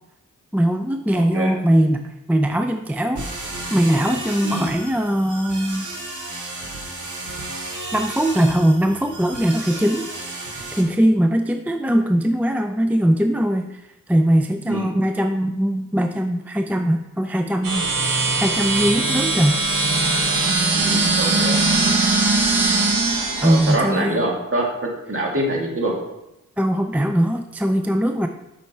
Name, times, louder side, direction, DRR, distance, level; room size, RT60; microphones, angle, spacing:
voice 1, 0.5-3.3 3.7-5.9 7.9-13.8 14.1-19.6 23.4-24.2 26.6-28.3, equal, 5° right, 6 dB, 0.4 m, -20 dB
voice 2, 1.1-1.5 4.4-4.7 14.7-14.9 20.8-21.6 23.4-24.6 25.1-25.9, right 1 dB, 40° right, -1 dB, 2.2 m, -24 dB
sound 1, 3.2-10.8, right 2 dB, 70° right, 1.7 m, -33 dB
sound 2, 17.6-23.8, right 3 dB, 85° right, 1.4 m, -20 dB
7.8 x 5.6 x 4.3 m, 0.92 s
wide cardioid pair, 80°, 32 cm